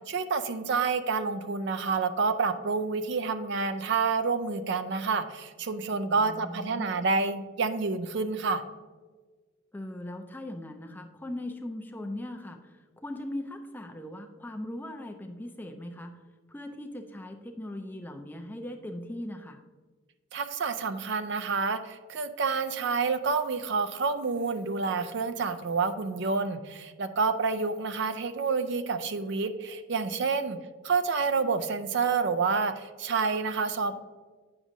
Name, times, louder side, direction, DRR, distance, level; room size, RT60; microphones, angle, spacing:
voice 1, 0.1-8.6 20.3-30.6 30.8-34.0, right 4 dB, 55° right, 10 dB, 0.4 m, -28 dB
voice 2, 6.1-6.9 9.7-16.1 16.5-19.6, left 1 dB, 10° left, 5 dB, 0.4 m, -39 dB
8.7 x 6.1 x 2.6 m, 1.4 s
head